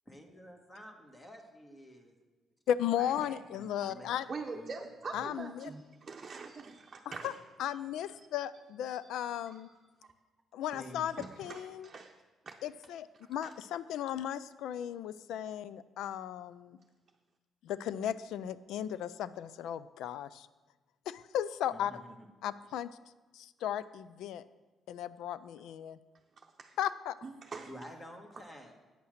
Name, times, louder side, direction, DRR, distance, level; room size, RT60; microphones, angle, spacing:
voice 1, 0.0-2.1 2.9-4.1 4.5-4.9 10.7-11.1 21.7-22.3 27.7-28.7, equal, 20° left, 2 dB, 1.4 m, -50 dB
voice 2, 2.7-4.3 5.1-5.7 7.2-7.3 7.6-9.7 10.5-11.9 12.6-16.8 17.6-20.5 21.1-21.9 22.4-22.9 23.3-24.4 24.9-26.0 26.8-27.1, left 10 dB, 85° left, 16 dB, 0.3 m, -36 dB
voice 3, 4.3-7.4 7.7-7.8 8.2-8.3 9.0-9.8 11.2-12.2 12.5-12.6 13.4-13.5 26.6-26.8 27.2-27.7, right 4 dB, 40° right, 1 dB, 0.7 m, -44 dB
8.7 x 5.6 x 6.5 m, 1.2 s
cardioid pair, 90°, 0 cm